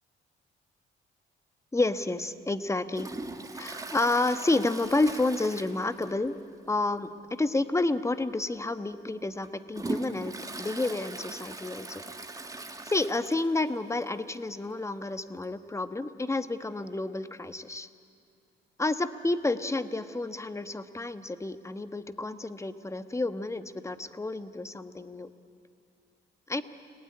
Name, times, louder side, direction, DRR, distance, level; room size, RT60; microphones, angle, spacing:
voice 1, 1.7-3.1 3.5-6.4 6.7-7.1 7.4-12.0 12.8-17.9 18.8-25.3 26.5-26.6, left 2 dB, 15° left, 11 dB, 1.3 m, -30 dB
Toilet flush, 2.9-6.4 6.6-6.7 7.2-7.3 8.1-8.2 8.8-13.7 14.0-14.1 14.3-14.4 15.4-15.5, right 2 dB, 15° right, 2.0 m, -40 dB
30.0 x 20.0 x 9.8 m, 2.4 s
cardioid pair, 90°, 20 cm